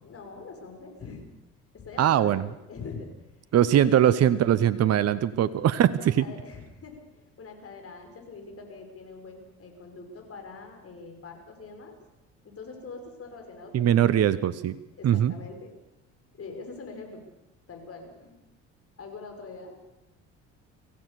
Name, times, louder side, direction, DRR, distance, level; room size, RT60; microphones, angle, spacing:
voice 1, 0.0-1.3 1.7-3.1 3.8-4.1 4.8-5.0 6.0-12.0 12.4-14.3 15.0-15.7 16.3-17.2 17.7-18.4 19.0-19.8, left 4 dB, 40° left, 3 dB, 6.0 m, -43 dB
voice 2, 2.0-2.4 3.5-6.1 13.7-14.8 15.0-15.3, right 10 dB, 45° right, 17 dB, 1.0 m, -21 dB
25.0 x 15.5 x 7.0 m, 0.92 s
hypercardioid pair, 60°, 36 cm